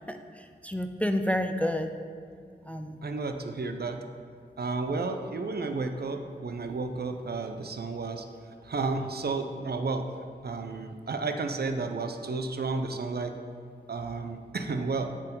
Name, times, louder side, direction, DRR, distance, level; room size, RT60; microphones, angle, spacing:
voice 1, 0.1-1.9 2.7-3.0, left 1 dB, 5° left, 7 dB, 0.3 m, -30 dB
voice 2, 3.0-4.0 4.6-8.3 8.6-10.0 10.4-13.3 13.9-15.1, right 3 dB, 60° right, 6 dB, 0.5 m, -32 dB
7.8 x 4.5 x 3.7 m, 2.3 s
wide cardioid pair, 70°, 18 cm